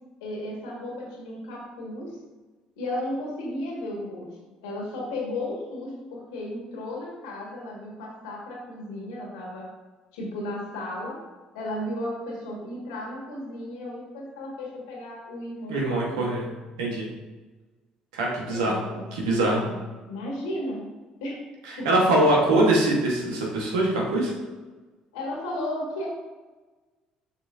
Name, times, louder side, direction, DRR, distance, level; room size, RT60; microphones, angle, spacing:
voice 1, 0.2-2.2 2.8-9.7 10.1-11.2 11.5-16.3 18.5-19.0 19.3-19.8 20.0-20.8 21.2-21.4 21.8-21.9 25.1-26.1, left 1 dB, 85° left, -3 dB, 1.9 m, -34 dB
voice 2, 15.7-16.5 16.8-17.1 18.1-18.8 19.1-19.6 21.7-24.3, right 1 dB, 85° right, -2 dB, 1.4 m, -23 dB
6.6 x 5.8 x 2.7 m, 1.2 s
hypercardioid pair, 60°, 3 cm